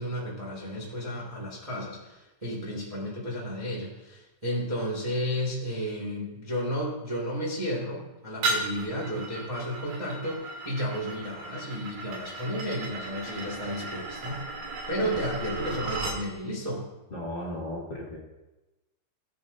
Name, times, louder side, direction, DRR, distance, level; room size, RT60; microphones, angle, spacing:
voice 1, 0.0-14.4 14.9-16.8, equal, 15° right, -4 dB, 1.7 m, -32 dB
sound 1, 8.4-16.2, right 3 dB, 80° right, 3.6 m, -35 dB
voice 2, 17.1-18.2, left 1 dB, 30° left, -6 dB, 2.5 m, -35 dB
18.0 x 9.2 x 2.7 m, 1.0 s
omnidirectional pair, 4.3 m